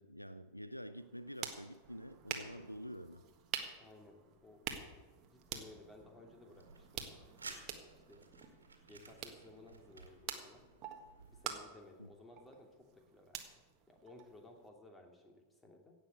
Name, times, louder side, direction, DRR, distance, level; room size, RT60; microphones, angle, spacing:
voice 1, 0.0-3.2 12.0-12.1, equal, 90° left, 13 dB, 0.5 m, -48 dB
sound 1, 1.0-14.7, right 8 dB, 35° right, 1.5 m, -48 dB
voice 2, 3.8-4.6 5.3-7.1 7.4-7.6 8.1-8.2 8.9-10.6 11.3-12.9 13.1-13.4 13.9-15.9, left 2 dB, 10° left, 2 dB, 2.7 m, -58 dB
sound 2, 6.5-11.6, right 4 dB, 75° right, 2.1 m, -55 dB
16.5 x 6.5 x 8.1 m, 1.3 s
figure-of-eight pair, 90°, 0 cm